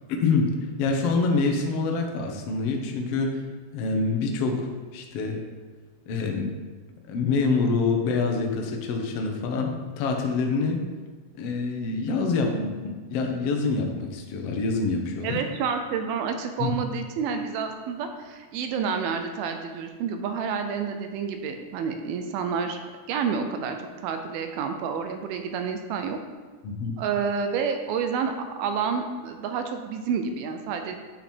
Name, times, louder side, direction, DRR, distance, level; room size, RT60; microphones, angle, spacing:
voice 1, 0.2-3.4 3.7-5.5 6.1-6.5 7.1-10.9 11.3-15.4 16.6-16.7 26.6-27.0, left 4 dB, 80° left, 2 dB, 1.4 m, -26 dB
voice 2, 15.2-22.8 23.1-23.8 24.0-26.2 27.0-28.3 28.6-31.0, right 6 dB, 80° right, 6 dB, 2.5 m, -29 dB
8.5 x 5.9 x 4.4 m, 1.4 s
omnidirectional pair, 4.3 m